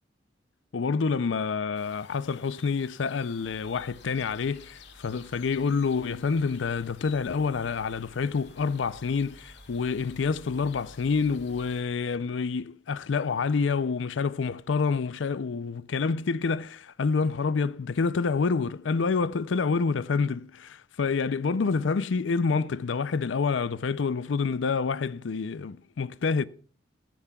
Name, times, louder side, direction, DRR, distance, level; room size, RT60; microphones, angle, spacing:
voice 1, 0.7-26.5, left 5 dB, 80° left, 0.5 m, -28 dB
sound 1, 1.7-11.8, left 6 dB, 65° left, 2.8 m, -54 dB
sound 2, 3.4-12.5 14.6-14.9, equal, 55° right, 2.1 m, -54 dB
16.0 x 13.5 x 2.3 m
head